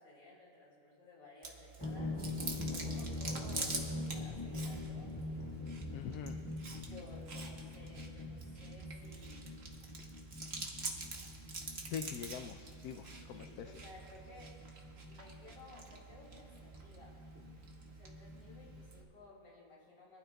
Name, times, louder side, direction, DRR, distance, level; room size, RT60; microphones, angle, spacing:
voice 1, 0.0-5.2 6.8-9.5 10.0-10.2 13.3-14.5 15.0-17.2 17.9-20.2, left 2 dB, 65° left, -4 dB, 3.1 m, -56 dB
Chewing mastication, 1.4-19.0, right 3 dB, 45° right, 1.4 m, -47 dB
sound 1, 1.8-18.8, left 2 dB, 15° left, 1.7 m, -44 dB
voice 2, 5.9-6.5 11.9-13.7, left 8 dB, 80° left, 7 dB, 1.1 m, -44 dB
23.5 x 12.5 x 2.3 m, 2.5 s
omnidirectional pair, 1.6 m